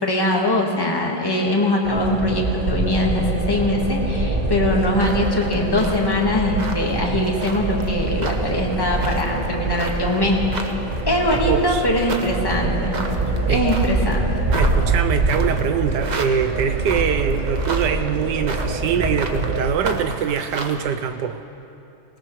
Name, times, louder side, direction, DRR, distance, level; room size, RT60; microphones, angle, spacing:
voice 1, 0.0-10.7 11.1-13.0 13.5-14.3, left 1 dB, 15° left, -1 dB, 1.3 m, -22 dB
sound 1, 1.8-19.7, right 2 dB, 40° right, 0.5 m, -24 dB
sound 2, 4.7-20.8, right 3 dB, 90° right, 0.3 m, -34 dB
voice 2, 11.5-11.9 13.5-13.6 14.5-21.4, right 8 dB, 70° right, 9 dB, 1.1 m, -23 dB
19.5 x 19.5 x 3.1 m, 2.7 s
omnidirectional pair, 2.2 m